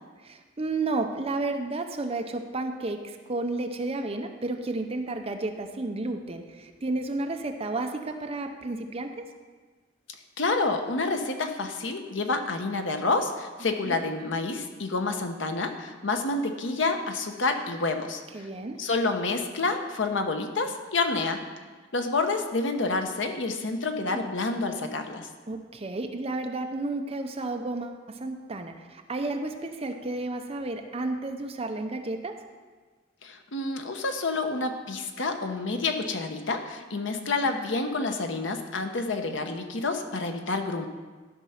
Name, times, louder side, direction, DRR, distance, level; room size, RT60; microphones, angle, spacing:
voice 1, 0.2-9.2 13.8-14.0 18.3-18.8 24.1-24.2 25.5-32.4, right 2 dB, 30° right, 5 dB, 0.8 m, -32 dB
voice 2, 10.4-18.5 18.8-21.4 21.9-25.3 33.2-40.9, left 3 dB, 70° left, 6 dB, 0.9 m, -28 dB
13.0 x 5.3 x 5.7 m, 1.4 s
head